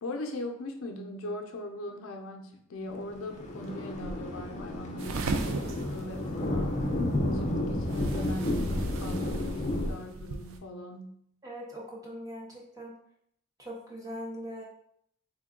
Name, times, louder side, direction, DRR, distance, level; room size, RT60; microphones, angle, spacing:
voice 1, 0.0-6.9 7.2-11.2, left 1 dB, 85° left, 4 dB, 0.5 m, -40 dB
Thunder, 3.0-9.9, left 1 dB, 35° left, 0.4 m, -31 dB
sound 1, 5.0-10.6, right 3 dB, 80° right, 0.4 m, -38 dB
voice 2, 11.4-12.9 13.6-14.6, equal, 15° right, -3 dB, 0.7 m, -41 dB
3.5 x 2.1 x 3.6 m, 0.70 s
head